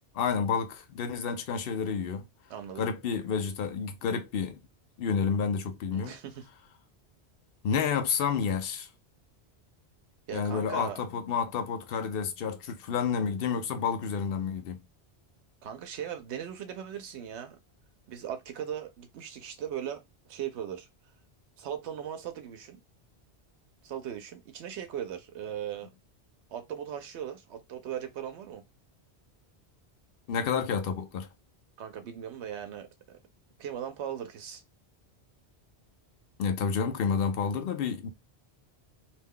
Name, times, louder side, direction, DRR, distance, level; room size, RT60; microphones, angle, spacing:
voice 1, 0.1-2.2 2.8-4.6 5.0-6.1 7.6-8.9 10.3-14.8 30.3-31.3 36.4-38.1, left 6 dB, 65° left, 0.8 m, -30 dB
voice 2, 2.5-2.9 5.9-6.5 10.3-11.0 15.6-17.6 18.1-20.0 20.3-20.9 21.6-22.8 23.8-25.9 26.5-28.6 31.8-33.2 33.6-34.6, right 9 dB, 90° right, 0.9 m, -38 dB
2.6 x 2.2 x 3.5 m
omnidirectional pair, 1.1 m